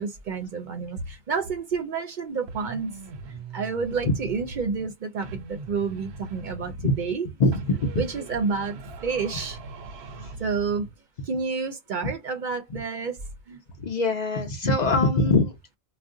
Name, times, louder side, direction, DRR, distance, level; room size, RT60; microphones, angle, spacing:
voice 1, 0.0-2.9 3.3-7.2 8.0-8.8 9.0-9.6 10.4-10.9 11.2-13.2 13.5-13.6 14.6-14.7, right 5 dB, 60° right, 0.6 m, -29 dB
sound 1, 2.5-4.9 5.2-7.2 7.5-11.0, right 3 dB, 90° right, 0.8 m, -41 dB
voice 2, 7.4-8.0 10.2-10.3 12.0-12.1 12.7-12.8 13.8-15.5, left 2 dB, 50° left, 0.7 m, -23 dB
2.4 x 2.0 x 3.6 m
omnidirectional pair, 1.1 m